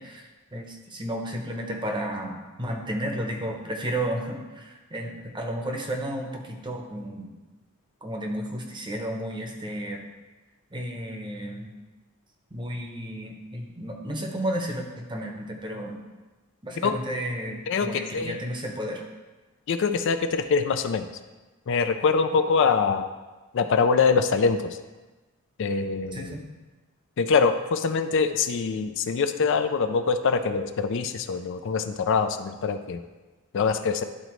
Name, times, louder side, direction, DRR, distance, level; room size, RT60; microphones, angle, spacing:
voice 1, 0.0-7.3 8.0-10.0 10.7-11.7 12.5-16.0 16.6-19.0 26.1-26.4, right 1 dB, 20° right, 2 dB, 0.8 m, -32 dB
voice 2, 17.7-18.4 19.7-21.1 21.7-23.1 23.5-24.8 25.6-26.3 27.2-33.0 33.5-34.0, left 5 dB, 60° left, 8 dB, 0.4 m, -24 dB
11.5 x 3.9 x 3.1 m, 1.2 s
head